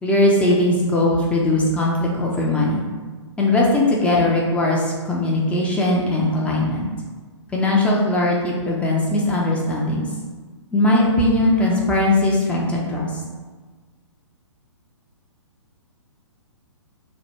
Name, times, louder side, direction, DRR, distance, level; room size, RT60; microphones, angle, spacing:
voice 1, 0.0-2.8 3.4-6.9 7.5-10.1 10.7-13.2, left 1 dB, 10° left, -4 dB, 0.4 m, -19 dB
3.1 x 2.1 x 4.2 m, 1.4 s
figure-of-eight pair, 130°, 16 cm